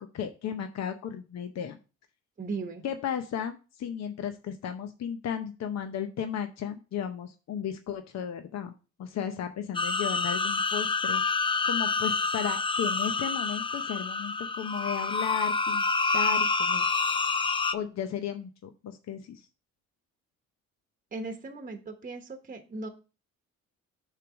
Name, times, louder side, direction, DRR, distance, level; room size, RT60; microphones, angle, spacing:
voice 1, 0.1-1.8 2.8-8.7 9.0-15.8 16.1-16.8 17.7-19.5, left 8 dB, 60° left, 7 dB, 0.8 m, -35 dB
voice 2, 2.4-2.8 21.1-22.9, right 3 dB, 30° right, 6 dB, 1.0 m, -37 dB
sound 1, 9.7-17.7, left 4 dB, 15° left, 0.5 m, -28 dB
6.6 x 3.3 x 6.0 m, 0.32 s
cardioid pair, 90°, 30 cm